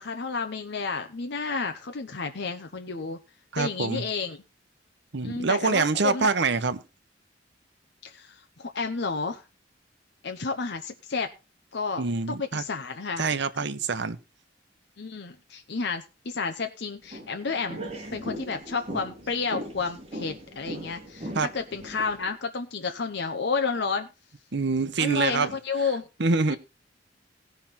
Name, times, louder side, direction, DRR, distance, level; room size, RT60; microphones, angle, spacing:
voice 1, 0.0-3.2 3.6-4.4 5.2-6.3 8.0-9.4 10.2-11.3 11.7-12.0 12.3-13.3 15.0-17.8 18.1-24.1 25.0-26.1 26.5-26.6, left 4 dB, 65° left, 0.9 m, -31 dB
voice 2, 3.5-4.0 5.1-6.8 12.0-12.6 13.2-14.2 21.3-21.5 24.5-25.5 26.2-26.6, right 4 dB, 65° right, 0.9 m, -25 dB
sound 1, 17.0-22.3, right 1 dB, 35° right, 2.7 m, -39 dB
17.5 x 5.9 x 4.1 m
head